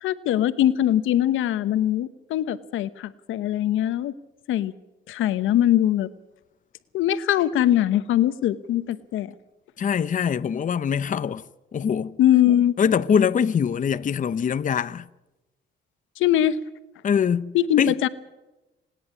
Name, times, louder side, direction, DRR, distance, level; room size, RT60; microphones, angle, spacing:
voice 1, 0.0-4.1 4.5-4.7 5.1-6.1 6.9-9.3 12.2-12.7 16.2-16.6 17.5-18.1, left 12 dB, 85° left, 1.0 m, -22 dB
voice 2, 9.8-11.4 11.7-12.2 12.8-15.1 17.0-18.0, left 7 dB, 40° left, 0.7 m, -23 dB
27.0 x 10.5 x 9.7 m
cardioid pair, 90°, 20 cm